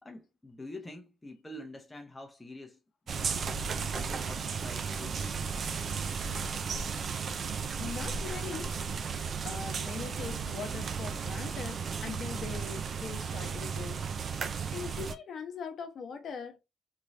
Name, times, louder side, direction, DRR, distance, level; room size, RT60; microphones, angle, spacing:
voice 1, 0.0-2.8 3.1-5.4, left 2 dB, 15° left, 0.7 m, -46 dB
sound 1, 3.1-15.1, right 6 dB, 50° right, 0.4 m, -34 dB
voice 2, 6.0-6.5 7.8-8.8 9.4-14.1 14.7-16.6, left 6 dB, 60° left, 0.9 m, -41 dB
3.7 x 3.1 x 2.6 m
cardioid pair, 90°, 0 cm